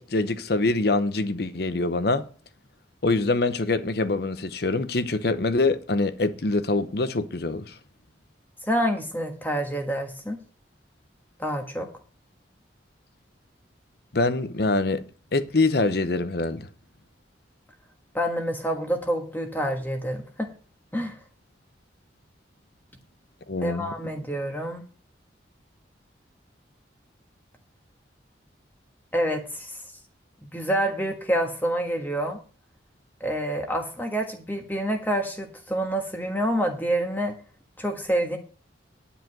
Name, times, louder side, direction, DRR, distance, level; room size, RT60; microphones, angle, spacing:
voice 1, 0.0-2.3 3.0-7.8 14.1-15.0 15.3-16.7 23.5-23.9, left 2 dB, 55° left, 0.8 m, -24 dB
voice 2, 8.7-10.4 11.4-11.9 18.1-20.5 20.9-21.2 23.6-24.8 29.1-29.8 30.4-32.4 33.2-37.3 37.8-38.4, equal, 10° left, 1.4 m, -27 dB
10.5 x 5.0 x 7.5 m
head